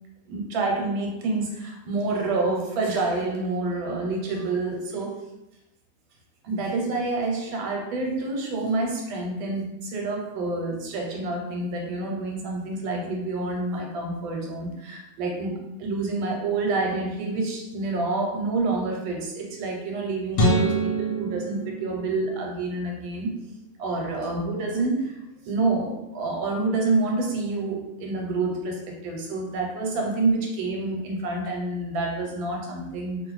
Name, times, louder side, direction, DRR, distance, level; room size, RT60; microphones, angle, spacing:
voice 1, 0.3-5.2 6.4-23.3 23.8-25.2 25.4-33.2, right 3 dB, 90° right, 0 dB, 1.5 m, -28 dB
sound 1, 20.3-22.7, right 1 dB, 70° left, 1.1 m, -25 dB
2.8 x 2.5 x 3.0 m, 0.92 s
omnidirectional pair, 2.1 m